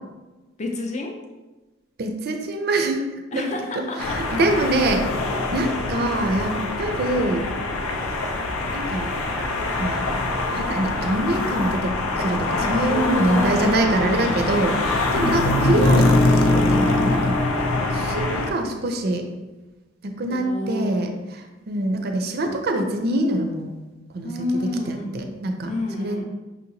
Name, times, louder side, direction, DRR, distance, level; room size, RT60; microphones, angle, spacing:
voice 1, 0.6-1.2 3.3-4.2 4.5-4.7 12.9-14.6 15.1-15.5 20.3-21.2 21.8-22.0 24.2-25.2 25.6-26.3, left 2 dB, 35° left, 2 dB, 0.4 m, -29 dB
voice 2, 2.0-3.1 3.3-3.5 3.7-7.5 8.7-9.1 9.8-10.1 10.4-17.4 17.9-19.3 20.0-23.7 24.1-24.3 24.9-26.3, right 1 dB, 50° right, 5 dB, 0.4 m, -25 dB
sound 1, 4.0-18.5, left 2 dB, 85° left, 0.5 m, -23 dB
5.5 x 2.8 x 2.6 m, 1.1 s
head